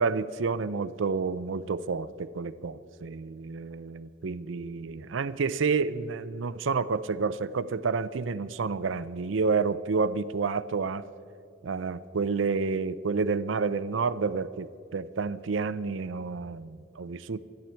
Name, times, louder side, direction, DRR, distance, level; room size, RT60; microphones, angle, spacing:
voice 1, 0.0-11.1 11.6-17.4, right 4 dB, 75° right, 14 dB, 0.5 m, -29 dB
28.5 x 10.5 x 4.4 m, 2.5 s
head